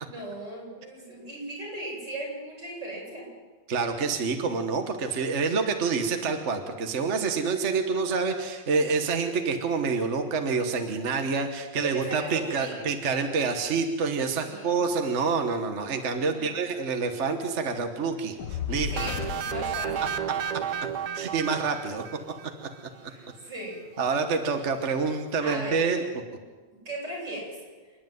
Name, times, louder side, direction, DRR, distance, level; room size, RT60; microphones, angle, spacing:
voice 1, 0.0-3.3 11.8-12.9 14.4-14.9 16.3-16.6 18.9-20.1 23.1-23.8 25.4-25.9 26.1-26.2 26.7-27.6, right 1 dB, 85° right, -4 dB, 8.8 m, -37 dB
voice 2, 3.7-18.9 21.1-22.0 22.6-22.7 24.0-26.0, right 4 dB, 45° right, 6 dB, 1.5 m, -27 dB
Fire, 18.4-20.8, left 8 dB, 70° left, 1.4 m, -35 dB
sound 1, 19.0-22.7, right 8 dB, 70° right, 1.5 m, -32 dB
28.0 x 10.5 x 9.3 m, 1.4 s
omnidirectional pair, 1.9 m